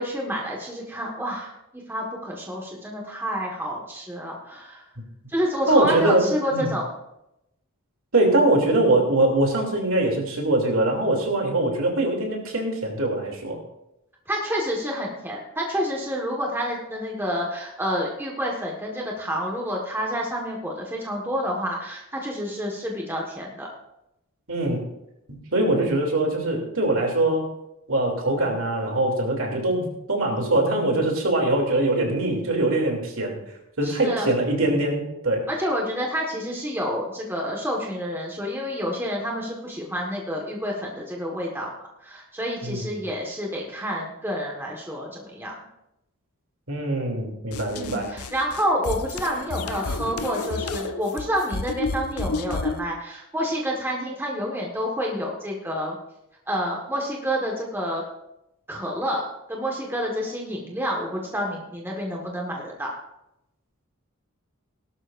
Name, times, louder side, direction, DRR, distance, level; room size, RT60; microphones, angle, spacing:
voice 1, 0.0-4.8 5.3-6.9 14.3-23.7 33.8-34.3 35.5-41.7 42.0-45.5 47.7-56.0 56.5-58.0 58.7-59.2 59.5-62.9, equal, 10° right, -2 dB, 1.6 m, -29 dB
voice 2, 5.7-6.2 6.5-6.7 8.1-13.6 24.5-24.8 25.5-27.5 27.9-33.4 33.8-35.5 42.6-42.8 46.7-48.1, right 2 dB, 65° right, 0 dB, 3.0 m, -22 dB
sound 1, 47.5-52.8, left 3 dB, 85° left, 0.7 m, -31 dB
18.0 x 12.0 x 2.6 m, 0.87 s
head